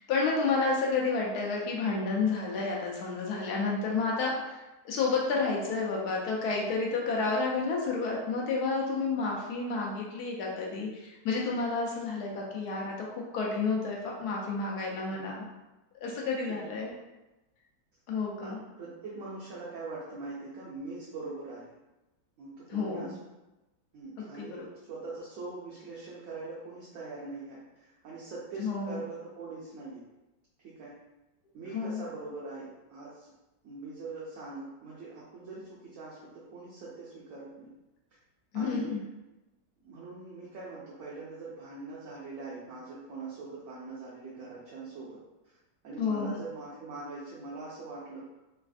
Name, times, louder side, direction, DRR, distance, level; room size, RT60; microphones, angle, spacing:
voice 1, 0.1-15.4 16.0-16.9 18.1-18.6 22.7-23.1 24.4-24.6 28.6-29.0 31.7-32.0 38.5-39.0 46.0-46.3, left 4 dB, 70° left, -2 dB, 1.1 m, -30 dB
voice 2, 16.5-16.8 18.4-18.5 18.8-21.7 22.4-23.2 23.9-30.0 30.6-31.0 31.5-33.3 33.6-37.7 38.5-39.0 39.8-45.2 45.8-48.2, right 3 dB, 65° right, -7 dB, 0.8 m, -42 dB
3.3 x 2.4 x 2.4 m, 1.0 s
omnidirectional pair, 1.9 m